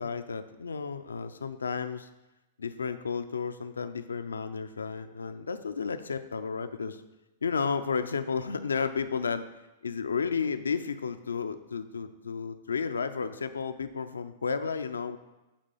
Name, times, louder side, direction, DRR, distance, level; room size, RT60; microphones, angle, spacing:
voice 1, 0.0-2.1 2.6-7.0 7.4-9.5 9.8-15.2, left 5 dB, 90° left, 10 dB, 0.4 m, -32 dB
8.3 x 2.9 x 5.4 m, 1.0 s
hypercardioid pair, 115°, 0 cm